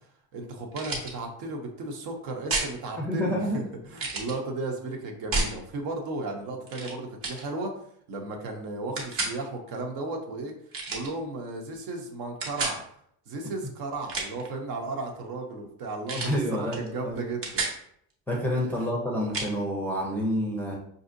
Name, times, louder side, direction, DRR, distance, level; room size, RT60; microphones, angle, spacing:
voice 1, 0.3-7.8 8.1-10.5 10.9-12.8 13.3-17.6 18.7-18.9, right 2 dB, 65° right, 2 dB, 0.9 m, -35 dB
sound 1, 0.7-1.1 2.5-2.7 4.0-4.3 5.3-5.6 6.7-6.9 7.2-7.4 9.0-9.4 10.7-11.1 12.4-12.8 13.9-14.5 16.1-16.4 16.7-16.9 17.2-17.8 19.3-19.5, right 2 dB, 35° right, 0.8 m, -30 dB
voice 2, 3.0-3.6 16.2-17.2 18.3-20.8, equal, 5° left, -2 dB, 0.5 m, -28 dB
5.5 x 2.7 x 2.6 m, 0.67 s
cardioid pair, 180°, 39 cm